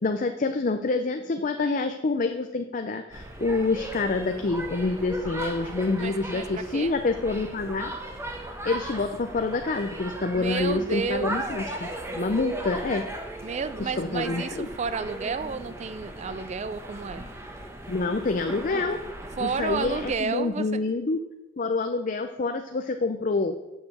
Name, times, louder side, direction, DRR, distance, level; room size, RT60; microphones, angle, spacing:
voice 1, 0.0-7.9 8.6-11.9 12.1-13.0 13.8-14.7 17.9-19.0 19.4-21.2 21.6-23.5, left 3 dB, 40° left, 6 dB, 0.5 m, -27 dB
sound 1, 3.1-20.1, right 1 dB, 15° right, 1.0 m, -37 dB
voice 2, 6.0-6.9 10.3-11.4 13.4-17.3 19.4-20.7, right 5 dB, 35° right, 13 dB, 0.4 m, -31 dB
7.8 x 6.7 x 7.1 m, 1.0 s
head